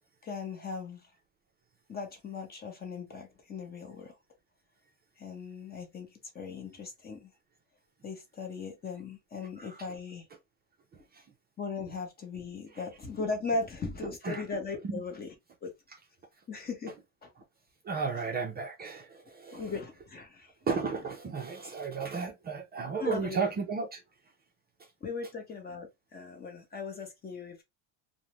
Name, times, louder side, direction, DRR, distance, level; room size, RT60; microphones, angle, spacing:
voice 1, 0.2-1.1 1.9-4.2 5.2-7.3 8.0-10.3 11.6-15.4 15.6-15.7 16.5-17.0 17.2-17.3 18.0-18.4 19.5-20.7 23.0-23.5 25.0-27.6, left 4 dB, 25° left, 0.8 m, -38 dB
voice 2, 17.8-19.7 20.7-24.0, right 5 dB, 25° right, 0.4 m, -34 dB
2.4 x 2.1 x 3.0 m
cardioid pair, 125°, 39 cm